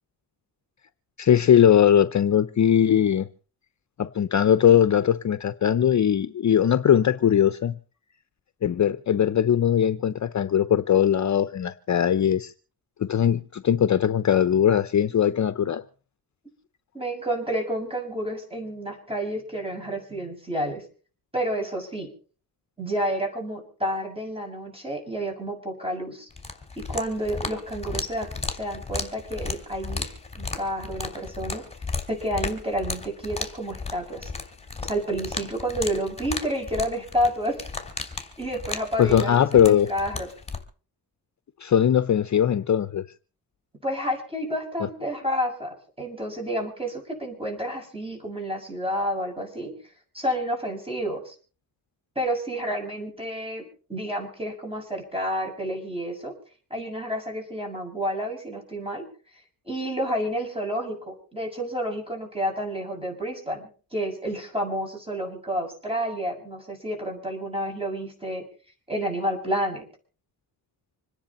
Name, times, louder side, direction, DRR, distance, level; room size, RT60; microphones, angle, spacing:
voice 1, 1.2-3.3 4.0-7.8 8.6-12.5 13.0-15.8 39.0-39.9 41.6-43.0, left 9 dB, 45° left, 12 dB, 0.7 m, -20 dB
voice 2, 16.9-20.8 21.3-22.1 22.8-26.3 26.8-28.3 28.6-30.1 30.4-31.6 32.1-34.3 34.8-37.7 38.4-40.3 43.8-49.7 50.1-51.4 52.2-53.6 53.9-56.4 56.7-59.1 59.3-68.5 68.9-69.8, equal, 15° right, 2 dB, 6.8 m, -30 dB
sound 1, 26.3-40.6, left 4 dB, 15° left, 3.2 m, -35 dB
26.5 x 10.0 x 4.2 m, 0.40 s
cardioid pair, 95°, 40 cm